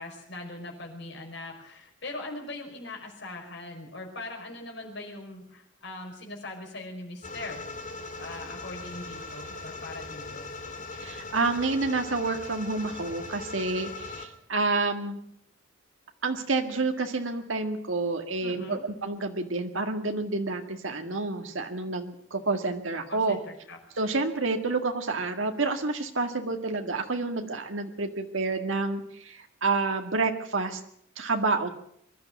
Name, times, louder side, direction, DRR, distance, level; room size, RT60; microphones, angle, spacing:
voice 1, 0.0-7.6 8.2-10.4 18.4-18.8 23.1-23.8, left 2 dB, 60° left, 1 dB, 5.3 m, -41 dB
sound 1, 7.2-14.3, left 2 dB, 40° left, 2.4 m, -40 dB
voice 2, 11.0-15.2 16.2-23.4 24.0-30.8 31.2-31.7, right 3 dB, 80° right, 5 dB, 1.9 m, -29 dB
23.0 x 12.0 x 9.3 m, 0.70 s
head